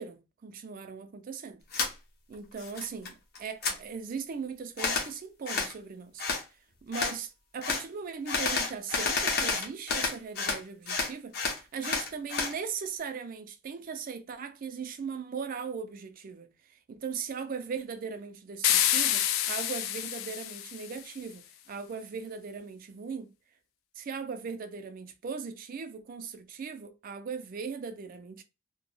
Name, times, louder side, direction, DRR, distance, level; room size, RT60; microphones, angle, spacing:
voice 1, 0.0-1.6 2.3-6.2 6.8-23.3 24.0-28.4, right 5 dB, 45° right, 0.3 m, -39 dB
sound 1, 1.7-1.9 2.3-3.1 3.4-3.8 4.8-5.1 5.5-5.7 6.2-6.4 6.9-7.2 7.6-7.8 8.3-10.6 10.9-12.5, left 4 dB, 50° left, 0.7 m, -30 dB
sound 2, 18.6-21.0, left 11 dB, 90° left, 0.3 m, -28 dB
2.1 x 2.1 x 3.1 m
head